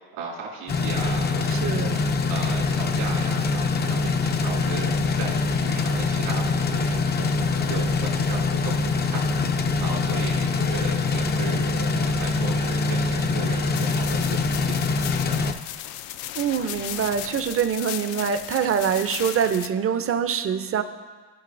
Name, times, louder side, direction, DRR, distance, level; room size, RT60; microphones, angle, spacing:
voice 1, 0.1-1.8 2.3-15.5, right 5 dB, 80° right, -4 dB, 2.6 m, -37 dB
sound 1, 0.7-15.5, left 4 dB, 25° left, 0.4 m, -24 dB
voice 2, 1.5-2.1 16.4-20.8, right 7 dB, 30° right, 10 dB, 0.5 m, -24 dB
sound 2, 13.7-19.7, left 13 dB, 75° left, 0.5 m, -36 dB
15.0 x 5.2 x 2.6 m, 1.4 s
supercardioid pair, 80°, 47 cm